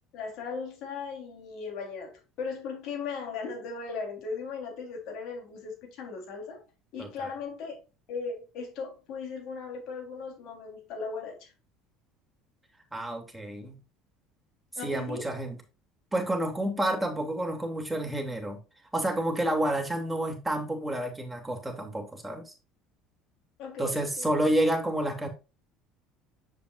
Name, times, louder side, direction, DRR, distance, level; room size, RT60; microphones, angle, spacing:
voice 1, 0.1-6.6 6.9-7.8 8.1-11.5 14.8-15.4 23.6-24.3, left 5 dB, 65° left, 3.7 m, -37 dB
voice 2, 7.0-7.3 12.9-13.8 14.8-15.6 16.1-18.6 18.9-22.5 23.8-25.3, right 1 dB, 10° right, 2.7 m, -29 dB
7.9 x 6.8 x 2.5 m
supercardioid pair, 85°, 0 cm